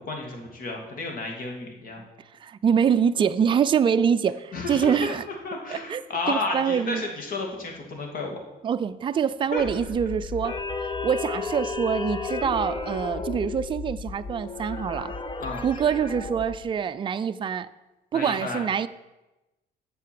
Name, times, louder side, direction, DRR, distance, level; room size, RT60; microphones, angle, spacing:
voice 1, 0.0-2.0 4.5-5.2 5.4-8.4 9.5-9.8 15.4-15.6 18.1-18.6, left 2 dB, 55° left, 2.5 m, -32 dB
voice 2, 2.4-5.2 5.7-6.0 6.3-7.1 8.6-15.1 15.6-17.7 18.1-18.9, right 7 dB, 30° right, 0.4 m, -25 dB
sound 1, 9.6-16.6, left 4 dB, 30° left, 0.9 m, -33 dB
8.3 x 6.6 x 7.7 m
cardioid pair, 130°, 17 cm